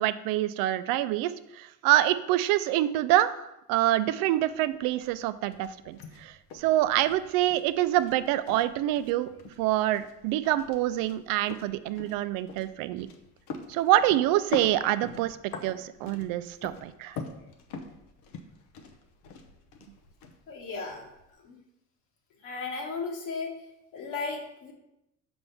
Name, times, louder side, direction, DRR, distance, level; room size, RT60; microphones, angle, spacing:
voice 1, 0.0-9.3 9.6-13.1 13.7-15.4 15.6-17.2, right 14 dB, 80° right, 13 dB, 0.5 m, -26 dB
sound 1, 4.3-21.3, left 4 dB, 90° left, 0.8 m, -44 dB
voice 2, 20.5-21.1 21.4-21.6 22.4-23.5 23.9-24.7, left 4 dB, 70° left, 0 dB, 1.5 m, -35 dB
6.0 x 5.4 x 3.4 m, 0.87 s
cardioid pair, 105°, 33 cm